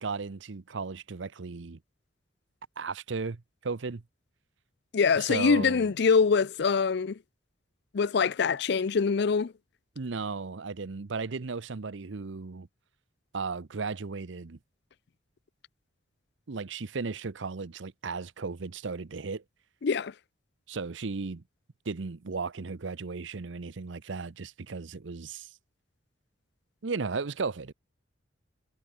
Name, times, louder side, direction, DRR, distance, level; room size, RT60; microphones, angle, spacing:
voice 1, 0.0-1.8 2.8-4.0 5.1-5.9 10.0-12.7 13.3-14.6 16.5-19.4 20.7-21.4 21.9-25.5 26.8-27.7, right 4 dB, 70° right, 0.7 m, -35 dB
voice 2, 4.9-7.2 7.9-9.5 19.8-20.1, left 5 dB, 60° left, 0.5 m, -24 dB
head